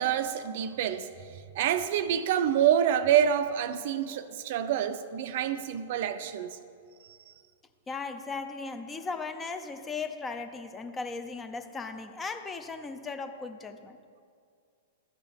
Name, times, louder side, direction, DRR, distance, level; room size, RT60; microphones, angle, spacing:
voice 1, 0.0-6.6 7.0-7.3, right 9 dB, 60° right, 11 dB, 0.5 m, -27 dB
voice 2, 7.9-14.0, left 4 dB, 15° left, 8 dB, 0.6 m, -37 dB
13.5 x 5.3 x 3.5 m, 2.2 s
hypercardioid pair, 110°, 0 cm